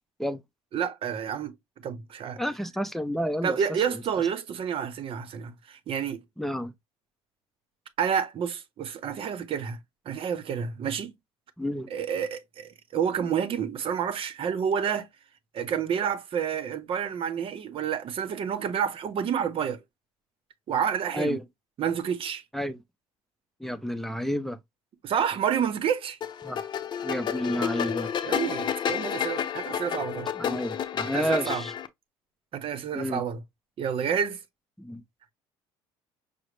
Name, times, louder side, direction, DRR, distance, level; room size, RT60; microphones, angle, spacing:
voice 1, 0.7-2.4 3.4-6.2 8.0-9.8 10.0-11.1 11.9-15.1 15.5-19.8 20.7-21.4 21.8-22.4 25.0-26.2 28.2-30.3 31.1-31.6 32.5-33.4 33.8-34.4, right 8 dB, 50° right, 0.9 m, -29 dB
voice 2, 2.4-3.6 3.9-4.0 6.4-6.7 11.6-11.9 21.1-21.4 22.5-22.8 23.6-24.6 26.4-26.6 27.0-28.1 30.4-31.7 32.9-33.2 34.8-35.0, equal, ahead, 0.6 m, -30 dB
sound 1, 26.2-31.9, left 8 dB, 40° left, 0.7 m, -30 dB
6.2 x 2.1 x 3.1 m
supercardioid pair, 85°, 12 cm